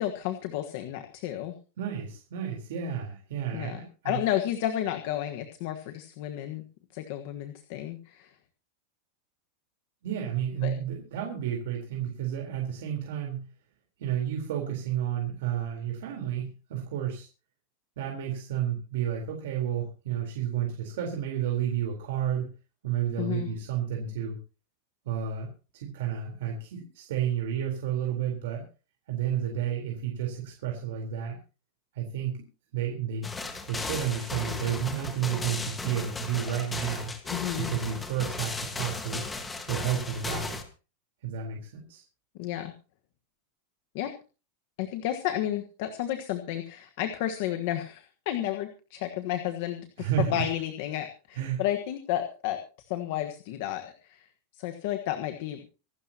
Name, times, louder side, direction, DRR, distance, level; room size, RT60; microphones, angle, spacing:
voice 1, 0.0-1.5 3.5-3.8 4.0-6.6 6.9-8.3 10.6-10.7 23.2-23.5 37.3-37.7 42.4-42.7 43.9-44.1 44.8-52.6 52.9-54.2 54.5-55.6, left 12 dB, 45° left, 7 dB, 1.4 m, -32 dB
voice 2, 1.8-4.2 10.0-13.5 14.0-17.3 18.0-22.5 22.8-24.4 25.0-28.6 29.1-31.4 31.9-32.4 32.7-33.3 33.7-37.1 37.6-39.2 39.7-40.6 41.2-42.0 50.0-50.4 51.4-51.6, right 9 dB, 65° right, 1 dB, 4.0 m, -31 dB
sound 1, 33.2-40.6, left 3 dB, 10° left, 1.6 m, -36 dB
26.0 x 12.0 x 2.9 m, 0.35 s
supercardioid pair, 180°, 0 cm